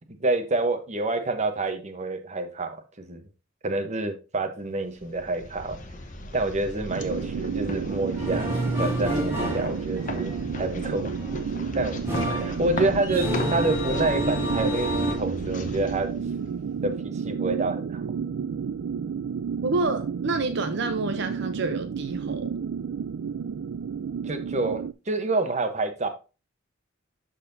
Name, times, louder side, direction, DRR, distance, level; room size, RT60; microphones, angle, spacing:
voice 1, 0.2-3.2 3.6-5.8 6.3-8.5 8.8-10.3 10.6-11.1 11.7-16.1 16.8-18.0 18.6-18.7 24.2-26.1, right 2 dB, 35° right, 0.9 m, -28 dB
sound 1, 4.8-16.9, left 1 dB, 40° left, 1.0 m, -38 dB
sound 2, 6.9-24.9, right 6 dB, 85° right, 0.3 m, -31 dB
sound 3, 7.9-15.1, equal, 15° right, 2.1 m, -30 dB
voice 2, 19.6-22.5, right 3 dB, 60° right, 0.7 m, -28 dB
12.0 x 4.1 x 2.7 m
head